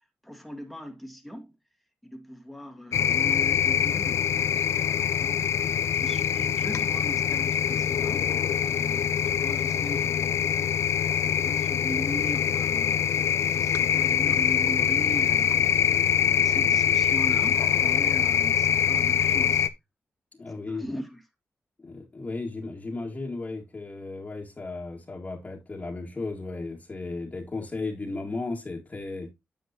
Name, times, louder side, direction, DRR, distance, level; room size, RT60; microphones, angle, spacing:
voice 1, 0.2-1.5 2.0-8.3 8.7-13.1 13.5-19.7 20.6-21.2, equal, ahead, 2.0 m, -40 dB
sound 1, 2.9-19.7, left 8 dB, 90° left, 0.5 m, -24 dB
voice 2, 20.4-20.9 21.8-29.3, left 3 dB, 35° left, 2.0 m, -35 dB
9.2 x 7.0 x 2.9 m
cardioid pair, 75°, 5 cm